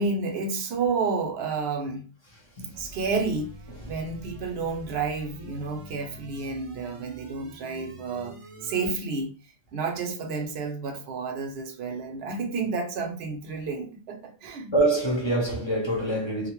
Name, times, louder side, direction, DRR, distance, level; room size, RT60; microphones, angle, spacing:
voice 1, 0.0-2.1 2.7-3.5 3.8-8.3 8.6-9.3 9.7-14.7, right 4 dB, 80° right, 0.9 m, -30 dB
sound 1, 2.7-8.9, right 2 dB, 55° right, 0.3 m, -45 dB
voice 2, 14.7-16.5, right 2 dB, 30° left, 0.7 m, -25 dB
2.7 x 2.1 x 2.9 m
omnidirectional pair, 1.0 m